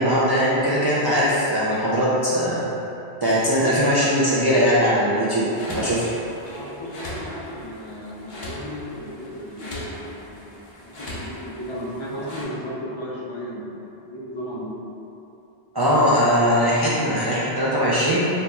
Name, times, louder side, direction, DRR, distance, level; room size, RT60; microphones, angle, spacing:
voice 1, 0.0-2.6 3.2-6.0 15.7-18.3, equal, 40° right, -8 dB, 0.3 m, -20 dB
sound 1, 5.5-12.4, left 1 dB, 70° left, 1.1 m, -39 dB
voice 2, 6.4-14.7, equal, 35° left, -6 dB, 0.5 m, -35 dB
4.0 x 3.0 x 3.4 m, 2.9 s
omnidirectional pair, 1.1 m